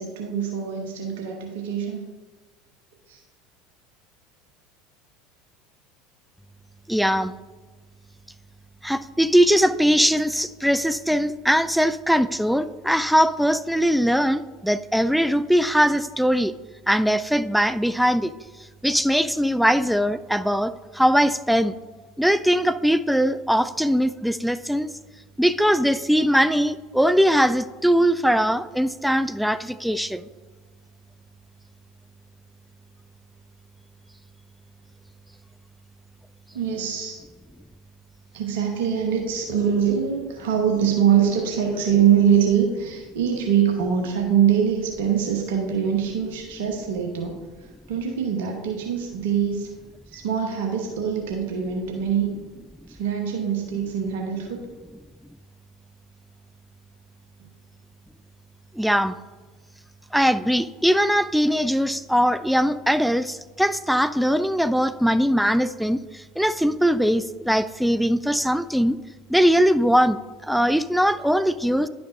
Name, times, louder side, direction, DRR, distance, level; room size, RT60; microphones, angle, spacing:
voice 1, 0.0-2.1 3.1-3.2 36.5-37.2 38.3-49.7 50.1-52.3 52.9-54.6, right 8 dB, 65° right, 1 dB, 1.0 m, -23 dB
voice 2, 6.9-7.4 8.8-16.5 16.9-18.3 18.8-21.8 22.2-24.9 25.4-30.2 58.7-59.1 60.1-69.0 69.3-71.9, equal, ahead, 12 dB, 0.3 m, -21 dB
10.5 x 5.8 x 2.6 m, 1.3 s
figure-of-eight pair, 70°, 0 cm